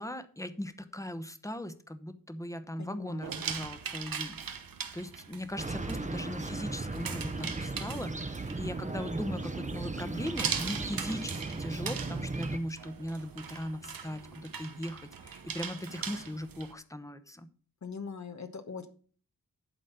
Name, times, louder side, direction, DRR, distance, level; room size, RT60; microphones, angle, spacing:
voice 1, 0.0-4.6 4.9-17.5, equal, 10° left, 10 dB, 1.0 m, -39 dB
voice 2, 2.8-3.5 17.8-18.9, left 5 dB, 55° left, 6 dB, 1.2 m, -42 dB
sound 1, 3.2-16.7, right 6 dB, 90° right, 1.0 m, -41 dB
sound 2, 5.6-12.6, right 3 dB, 20° right, 0.9 m, -36 dB
11.5 x 4.2 x 6.9 m, 0.42 s
wide cardioid pair, 90°, 34 cm